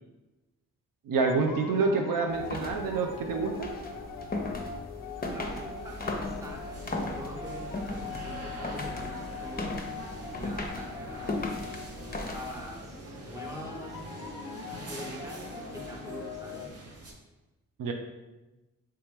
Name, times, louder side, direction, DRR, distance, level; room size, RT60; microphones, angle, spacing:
sound 1, 1.1-16.7, left 5 dB, 65° left, 0.5 m, -42 dB
voice 1, 1.1-3.7 17.8-17.9, right 4 dB, 75° right, 3 dB, 0.5 m, -27 dB
sound 2, 2.3-12.8, left 2 dB, 25° left, 0.7 m, -37 dB
sound 3, 4.8-17.1, right 2 dB, 45° right, 0.8 m, -45 dB
voice 2, 5.3-9.7 10.3-11.9 12.3-14.0 14.9-16.7, equal, 10° right, -1 dB, 1.0 m, -44 dB
3.3 x 2.9 x 3.4 m, 1.1 s
supercardioid pair, 40°, 34 cm